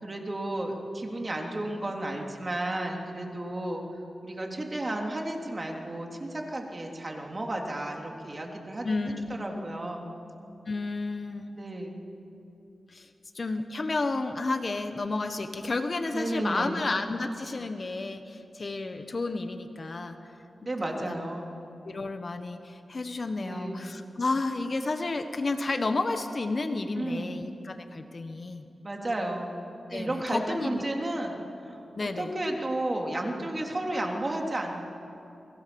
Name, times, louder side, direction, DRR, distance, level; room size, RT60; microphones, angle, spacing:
voice 1, 0.0-3.8 4.2-10.0 11.5-12.0 16.1-16.9 20.6-21.6 23.4-23.9 26.9-27.4 28.8-29.5 29.9-34.7, right 1 dB, 30° right, 1 dB, 3.4 m, -33 dB
voice 2, 8.8-9.4 10.6-11.5 12.9-13.1 13.3-20.2 20.8-21.2 21.8-28.6 29.9-30.8 32.0-32.3, left 3 dB, 45° left, 7 dB, 1.4 m, -31 dB
29.5 x 21.0 x 7.1 m, 2.7 s
wide cardioid pair, 90°, 0 cm